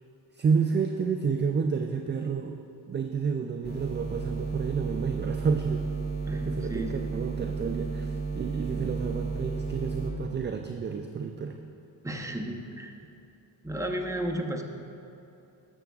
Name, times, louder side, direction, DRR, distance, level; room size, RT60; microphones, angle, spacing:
voice 1, 0.3-2.6 2.9-5.8 6.3-11.6, right 5 dB, 25° right, 4 dB, 0.3 m, -30 dB
sound 1, 3.6-10.1, right 4 dB, 20° left, 1.8 m, -33 dB
voice 2, 6.2-7.0 12.0-12.9 13.6-14.6, right 1 dB, 5° right, 1 dB, 0.8 m, -33 dB
12.5 x 6.9 x 2.4 m, 2.8 s
cardioid pair, 65°, 48 cm